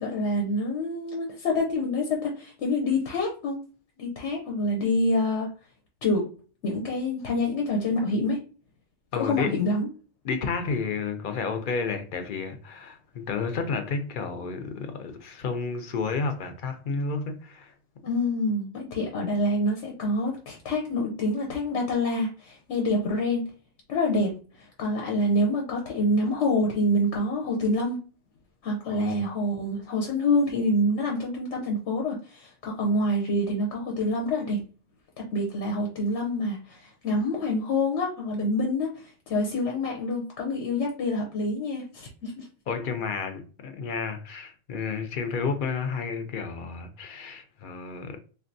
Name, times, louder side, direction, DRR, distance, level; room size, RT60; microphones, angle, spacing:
voice 1, 0.0-3.6 4.0-5.5 6.0-6.3 6.6-8.4 9.1-9.9 18.0-23.5 23.9-24.3 24.6-28.1 28.6-34.6 35.3-42.5, left 1 dB, 90° left, 1.0 m, -26 dB
voice 2, 9.1-9.6 10.2-17.7 28.9-29.2 42.7-48.2, left 5 dB, 55° left, 0.6 m, -31 dB
3.4 x 2.5 x 2.5 m
omnidirectional pair, 1.1 m